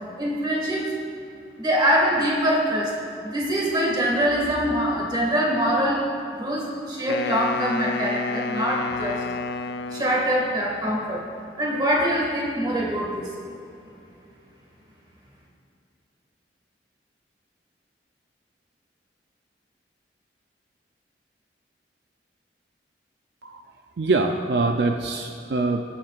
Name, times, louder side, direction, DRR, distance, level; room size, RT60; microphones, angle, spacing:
voice 1, 0.1-0.9 1.6-2.9 3.2-6.1 6.4-9.2 9.9-11.2 11.6-13.3, equal, 25° right, -3 dB, 1.9 m, -24 dB
Wind instrument woodwind instrument, 7.1-10.5, left 4 dB, 65° left, 0.3 m, -30 dB
voice 2, 24.0-25.8, right 3 dB, 65° right, 4 dB, 0.5 m, -24 dB
20.5 x 7.4 x 2.5 m, 2.7 s
head